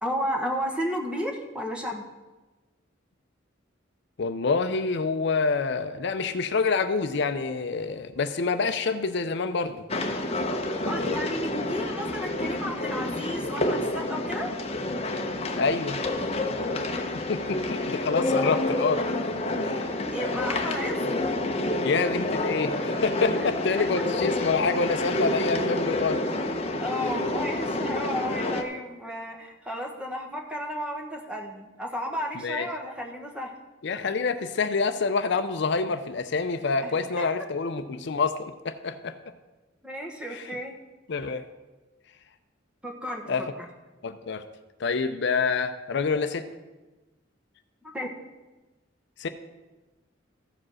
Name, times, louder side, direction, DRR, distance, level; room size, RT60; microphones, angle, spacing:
voice 1, 0.0-2.0 10.8-14.5 20.1-21.1 23.3-23.5 23.7-23.8 26.8-33.5 36.8-37.2 39.8-40.8 42.8-43.7 47.8-48.1, equal, 5° right, 1 dB, 1.2 m, -33 dB
voice 2, 4.2-9.8 15.5-16.0 17.3-19.1 19.6-19.8 21.8-26.2 32.4-32.7 33.8-39.2 40.3-40.4 41.1-41.4 43.3-43.4 44.0-44.4 44.8-46.4 49.2-49.3, left 4 dB, 60° left, 9 dB, 0.5 m, -27 dB
sound 1, 9.9-28.6, left 2 dB, 30° left, 0.8 m, -28 dB
14.5 x 5.0 x 6.3 m, 1.2 s
head